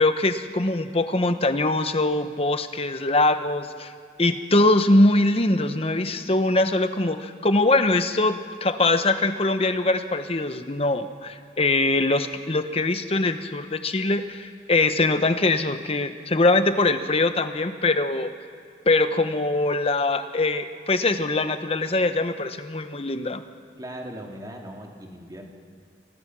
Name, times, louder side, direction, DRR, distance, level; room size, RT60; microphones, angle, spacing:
voice 1, 0.0-3.9 4.2-18.3 18.9-23.4, left 2 dB, 30° left, 9 dB, 1.0 m, -22 dB
voice 2, 23.8-25.5, right 1 dB, 20° right, 0 dB, 2.7 m, -38 dB
27.5 x 20.0 x 6.2 m, 2.3 s
head